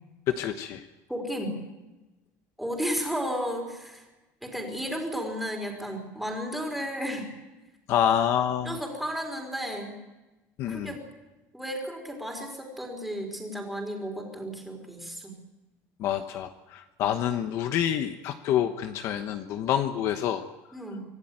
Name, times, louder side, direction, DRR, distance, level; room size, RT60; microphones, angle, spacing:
voice 1, 0.3-0.8 7.9-8.8 10.6-10.9 16.0-20.4, left 10 dB, 50° left, 8 dB, 1.1 m, -27 dB
voice 2, 1.1-1.6 2.6-4.0 4.4-7.3 8.6-10.0 10.7-11.0 11.5-15.3 20.7-21.0, equal, ahead, 2 dB, 4.3 m, -33 dB
26.0 x 16.5 x 9.1 m, 1.1 s
cardioid pair, 180°, 6 cm